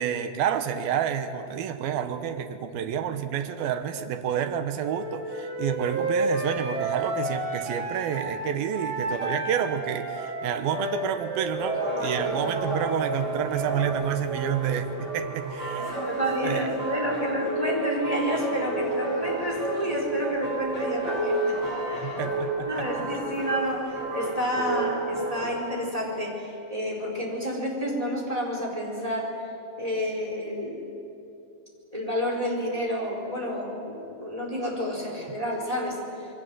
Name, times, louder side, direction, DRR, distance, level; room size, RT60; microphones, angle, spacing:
voice 1, 0.0-16.0 16.4-16.7 22.0-22.9, right 9 dB, 85° right, 8 dB, 3.0 m, -29 dB
Wind instrument woodwind instrument, 4.8-8.4 8.7-12.5, right 2 dB, 55° right, 8.8 m, -31 dB
sound 1, 11.5-25.6, right 2 dB, 30° right, 8.1 m, -30 dB
voice 2, 15.9-21.6 21.9-22.2 22.7-29.3 29.8-31.0 31.9-36.3, equal, 10° right, -2 dB, 4.3 m, -30 dB
27.5 x 22.5 x 7.8 m, 2.7 s
omnidirectional pair, 4.2 m